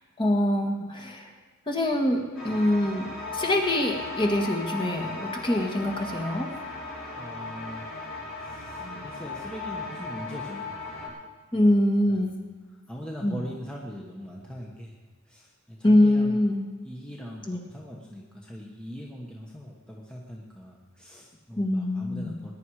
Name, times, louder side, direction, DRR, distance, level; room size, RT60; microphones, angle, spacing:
voice 1, 0.2-1.3 1.7-6.5 8.8-9.0 11.5-12.4 13.2-13.4 15.8-16.7 17.5-17.6 21.6-22.4, left 1 dB, 25° left, 2 dB, 1.8 m, -24 dB
sound 1, 2.3-11.1, left 2 dB, 60° left, 6.3 m, -37 dB
voice 2, 7.1-8.0 8.4-10.7 11.5-11.8 12.1-12.3 12.9-15.0 15.3-16.4 16.8-22.5, equal, 5° left, -3 dB, 1.3 m, -41 dB
20.0 x 10.5 x 4.9 m, 1.3 s
head